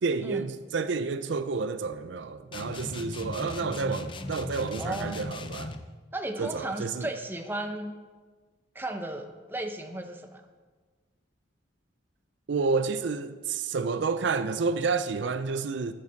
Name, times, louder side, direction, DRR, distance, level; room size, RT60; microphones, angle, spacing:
voice 1, 0.0-5.7 6.4-7.1 12.5-15.9, right 4 dB, 70° right, 0.5 m, -30 dB
sound 1, 2.5-5.9, left 2 dB, 25° left, 0.5 m, -38 dB
voice 2, 4.8-5.3 6.1-8.0 8.7-10.4, right 1 dB, 10° right, 0.7 m, -35 dB
8.5 x 8.3 x 6.4 m
head